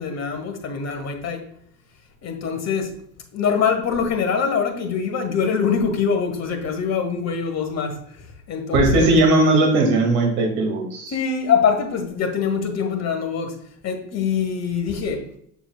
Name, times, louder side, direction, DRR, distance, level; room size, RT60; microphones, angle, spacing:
voice 1, 0.0-1.5 2.2-2.9 3.3-9.2 11.1-15.3, left 6 dB, 40° left, 1.5 m, -24 dB
voice 2, 8.7-11.1, right 2 dB, 60° right, 2.0 m, -18 dB
7.1 x 6.5 x 2.2 m
hypercardioid pair, 75°, 42 cm